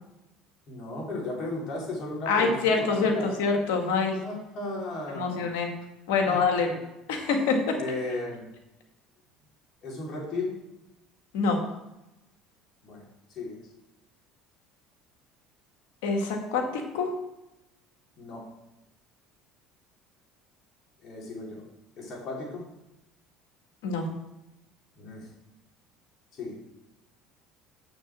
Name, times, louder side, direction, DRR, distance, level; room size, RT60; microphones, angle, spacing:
voice 1, 0.7-3.4 4.1-5.5 6.2-6.8 7.8-8.5 9.8-10.6 12.8-13.6 18.2-18.5 21.0-21.6 22.0-22.7 25.0-25.3 26.3-26.6, left 2 dB, 55° left, -2 dB, 4.1 m, -35 dB
voice 2, 2.3-4.2 5.1-5.7 6.1-6.7 7.1-7.8 11.3-11.6 16.0-16.6 16.9-17.1 23.8-24.1, left 4 dB, 80° left, 3 dB, 2.1 m, -25 dB
7.1 x 6.8 x 7.5 m, 0.93 s
supercardioid pair, 85°, 0 cm